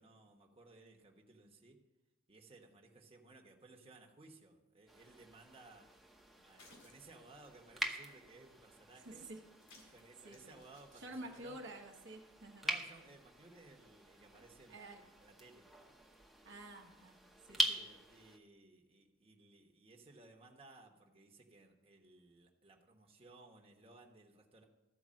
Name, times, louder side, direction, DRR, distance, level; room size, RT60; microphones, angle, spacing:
voice 1, 0.0-1.8 2.3-5.9 6.4-9.2 9.9-11.7 12.6-15.7 17.5-24.6, right 2 dB, 30° right, 1 dB, 1.2 m, -60 dB
sound 1, 4.9-18.4, right 1 dB, ahead, 0.8 m, -44 dB
sound 2, 5.9-13.2, left 2 dB, 85° left, 2.8 m, -68 dB
voice 2, 9.0-9.4 9.7-9.9 10.2-10.6 11.0-12.7 14.7-15.0 16.4-17.2 17.5-17.8, right 1 dB, 60° right, 1 dB, 1.1 m, -50 dB
13.5 x 4.7 x 7.5 m, 1.0 s
head